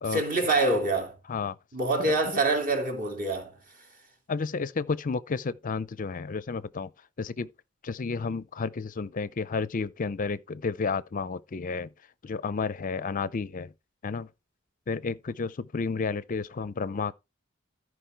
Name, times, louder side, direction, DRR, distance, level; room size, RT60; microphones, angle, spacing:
voice 1, 0.1-1.2 1.7-3.6 15.0-15.1, right 2 dB, 40° right, 3.2 m, -26 dB
voice 2, 2.0-2.4 4.3-6.9 7.2-7.5 7.8-11.9 12.2-13.7 14.0-14.3 14.9-17.1, left 4 dB, 40° left, 0.5 m, -31 dB
14.0 x 5.0 x 4.4 m
head